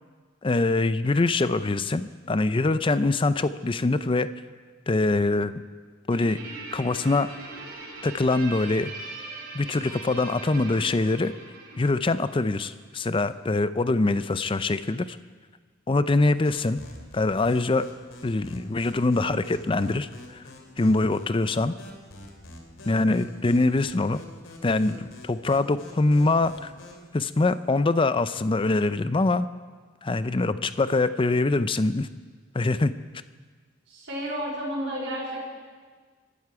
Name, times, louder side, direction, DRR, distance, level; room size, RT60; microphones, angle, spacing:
voice 1, 0.4-4.3 4.9-5.5 6.1-6.4 6.7-7.3 8.0-8.9 9.5-11.3 11.8-15.2 15.9-16.8 17.1-17.9 18.2-20.4 20.8-21.7 22.9-24.2 24.6-26.7 27.1-29.5 30.0-32.1 32.5-32.9, left 2 dB, 25° left, 13 dB, 0.5 m, -24 dB
Guitar, 6.1-12.8, right 3 dB, 50° right, 4.0 m, -41 dB
sound 1, 16.4-27.1, left 1 dB, 80° left, 2.7 m, -46 dB
voice 2, 33.9-35.5, equal, 70° right, -8 dB, 4.6 m, -31 dB
23.0 x 12.5 x 4.8 m, 1.5 s
head